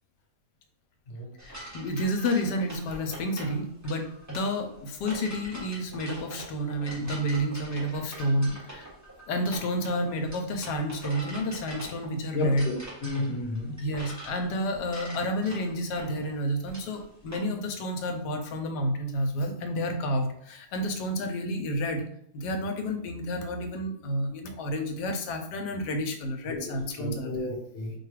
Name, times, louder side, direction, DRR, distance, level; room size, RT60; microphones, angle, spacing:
voice 1, 1.4-8.9 9.3-12.7 13.8-22.0 22.3-27.5, equal, 85° left, 5 dB, 1.2 m, -30 dB
sound 1, 1.4-17.5, right 1 dB, 15° right, 0.9 m, -44 dB
voice 2, 12.3-12.7 13.0-13.7 26.5-26.6 27.0-27.9, left 2 dB, 50° left, 0 dB, 0.9 m, -32 dB
4.5 x 2.3 x 3.2 m, 0.70 s
omnidirectional pair, 1.7 m